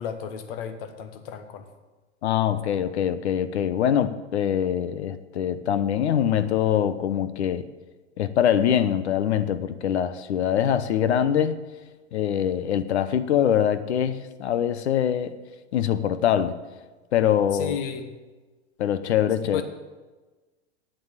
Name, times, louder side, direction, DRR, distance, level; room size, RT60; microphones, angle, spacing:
voice 1, 0.0-1.6 17.5-18.1 19.4-19.6, left 7 dB, 55° left, 8 dB, 1.3 m, -33 dB
voice 2, 2.2-7.7 8.2-11.6 12.1-15.4 15.7-16.6 17.1-17.8 18.8-19.6, left 9 dB, 70° left, 13 dB, 0.9 m, -23 dB
9.2 x 7.7 x 7.4 m, 1.3 s
hypercardioid pair, 100°, 34 cm